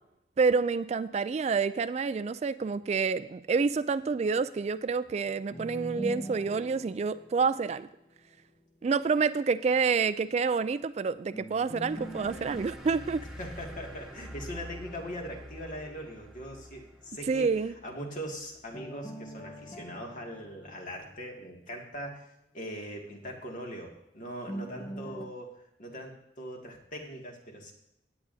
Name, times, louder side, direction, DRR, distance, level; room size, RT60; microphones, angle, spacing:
voice 1, 0.4-7.9 8.8-13.2 17.3-17.7, right 5 dB, 40° right, 13 dB, 0.3 m, -28 dB
sound 1, 5.5-8.6 11.3-14.6 18.7-21.8 24.5-25.3, equal, 30° left, 1.0 m, -44 dB
sound 2, 11.7-18.8, equal, 5° right, 1.4 m, -47 dB
voice 2, 13.4-22.2 22.5-25.5 25.8-27.7, equal, 45° left, 0 dB, 2.2 m, -41 dB
16.5 x 9.6 x 2.8 m, 0.82 s
head